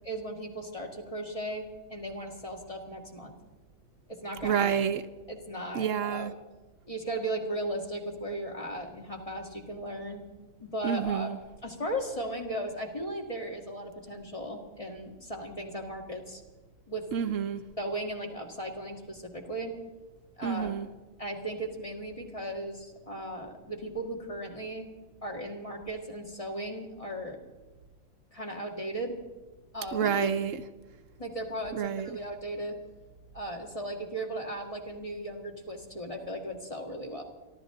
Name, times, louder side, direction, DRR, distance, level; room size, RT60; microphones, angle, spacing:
voice 1, 0.0-3.3 4.1-4.7 5.3-6.3 6.9-10.2 10.6-11.3 11.6-16.4 16.9-17.1 17.8-19.7 20.4-20.7 21.2-24.9 25.2-27.4 28.3-29.1 29.7-30.3 31.2-32.8 33.3-37.2, right 1 dB, 25° left, 2 dB, 2.2 m, -36 dB
voice 2, 4.4-5.0 5.7-6.3 10.8-11.4 17.1-17.6 20.4-20.9 29.9-30.6 31.7-32.1, right 8 dB, 70° right, 10 dB, 1.0 m, -29 dB
29.0 x 12.0 x 3.9 m, 1.2 s
omnidirectional pair, 1.4 m